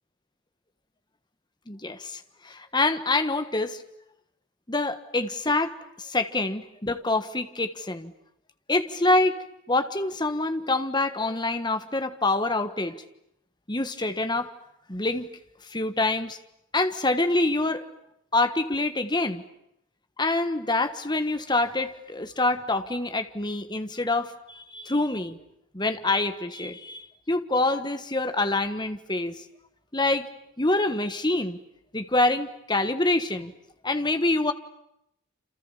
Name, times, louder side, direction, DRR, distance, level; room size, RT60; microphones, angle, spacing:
voice 1, 1.7-3.8 4.7-8.1 8.7-9.4 9.7-13.0 13.7-14.5 14.9-15.3 15.7-16.4 16.7-17.8 18.3-19.4 20.2-25.4 25.7-29.4 29.9-30.3 30.6-31.6 31.9-33.5 33.8-34.5, left 2 dB, 20° left, 9 dB, 1.4 m, -26 dB
29.0 x 27.0 x 7.4 m, 0.79 s
head